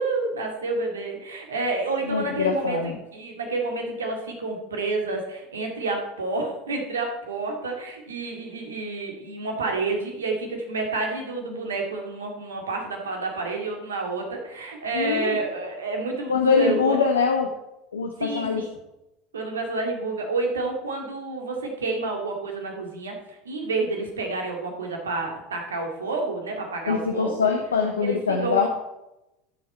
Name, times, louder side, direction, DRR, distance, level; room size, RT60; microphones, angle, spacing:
voice 1, 0.0-17.0 18.2-18.7 19.3-27.5 28.0-28.6, right 3 dB, 75° right, 2 dB, 2.2 m, -29 dB
voice 2, 2.1-3.0 14.9-15.4 16.3-17.5 17.9-18.6 26.9-28.7, left 5 dB, 80° left, 3 dB, 0.9 m, -23 dB
14.5 x 6.5 x 4.4 m, 0.94 s
figure-of-eight pair, 75°, 0 cm